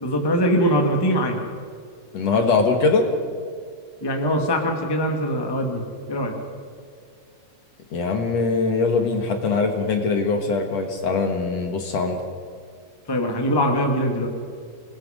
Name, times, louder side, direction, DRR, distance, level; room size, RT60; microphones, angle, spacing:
voice 1, 0.0-1.4 4.0-5.8 6.1-6.3 13.1-14.3, equal, 10° left, 2 dB, 1.5 m, -22 dB
voice 2, 2.1-3.1 7.9-12.2, left 4 dB, 55° left, 4 dB, 2.6 m, -22 dB
26.5 x 20.0 x 5.2 m, 2.2 s
omnidirectional pair, 3.9 m